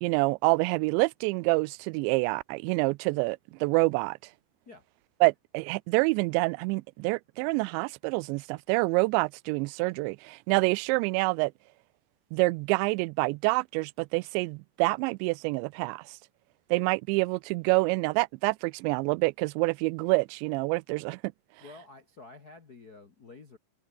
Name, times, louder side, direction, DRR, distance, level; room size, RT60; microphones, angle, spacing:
voice 1, 0.0-4.2 5.2-11.5 12.3-16.2 16.7-21.2, right 26 dB, 85° right, 2.8 m, -27 dB
voice 2, 21.6-23.6, left 3 dB, 85° left, 0.8 m, -49 dB
omnidirectional pair, 5.2 m